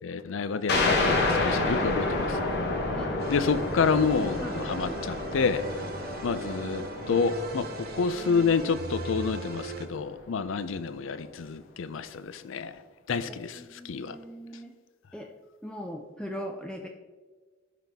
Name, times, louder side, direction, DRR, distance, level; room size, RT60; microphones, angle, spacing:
voice 1, 0.0-2.5 3.3-5.6 6.2-12.8 13.1-14.2, left 5 dB, 75° left, 0.5 m, -29 dB
sound 1, 0.7-9.9, left 2 dB, 60° left, 1.2 m, -30 dB
sound 2, 3.2-9.9, right 2 dB, 50° right, 0.8 m, -39 dB
voice 2, 13.3-14.7 15.1-15.3 15.6-16.9, equal, 5° left, 0.4 m, -40 dB
11.0 x 4.0 x 3.5 m
head